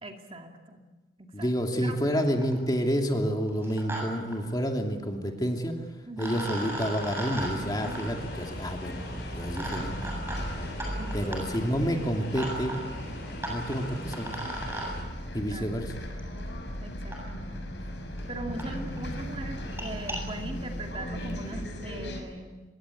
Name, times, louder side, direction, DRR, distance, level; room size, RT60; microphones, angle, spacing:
voice 1, 0.0-0.9 1.2-1.5 1.8-2.0 6.1-6.4 11.0-11.5 15.5-15.9 16.8-17.7 18.3-22.6, right 1 dB, 30° right, 3 dB, 2.5 m, -40 dB
voice 2, 1.3-5.8 6.2-9.0 9.3-10.0 11.1-12.8 13.4-14.4 15.3-15.9 17.5-17.6, equal, 20° left, 2 dB, 2.7 m, -29 dB
sound 1, 1.9-2.0 2.2-2.6 3.5-4.0 4.3-4.4 5.7-5.8 6.2-14.9 16.2-16.3 17.1-17.2 17.9-18.0 18.2-18.3 18.6-18.7 19.0-19.2 19.6-20.2, right 1 dB, 15° right, 7.6 m, -38 dB
sound 2, 6.3-15.0, left 1 dB, 55° left, 7.1 m, -43 dB
Bus, 7.3-22.2, equal, 75° left, 6.3 m, -37 dB
25.5 x 22.5 x 8.6 m, 1.2 s
head